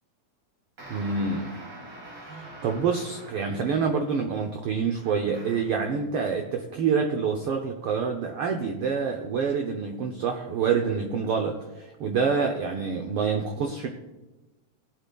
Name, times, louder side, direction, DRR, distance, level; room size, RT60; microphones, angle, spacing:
sound 1, 0.8-3.8 5.0-5.8, right 1 dB, 40° right, 2.5 m, -44 dB
voice 1, 0.9-1.5 2.2-13.9, right 5 dB, 90° right, 3 dB, 1.2 m, -27 dB
18.0 x 8.1 x 2.3 m, 1.1 s
omnidirectional pair, 3.3 m